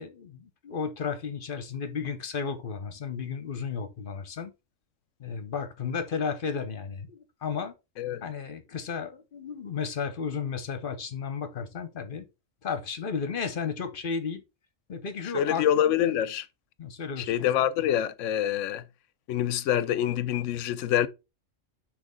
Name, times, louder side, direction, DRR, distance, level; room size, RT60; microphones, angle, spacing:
voice 1, 0.0-4.5 5.2-7.7 8.2-12.3 12.6-14.4 14.9-15.6 16.8-17.3, left 6 dB, 45° left, 1.0 m, -33 dB
voice 2, 15.3-16.5 17.2-18.8 19.3-21.1, left 11 dB, 70° left, 0.9 m, -26 dB
6.2 x 3.1 x 5.1 m
omnidirectional pair, 1.4 m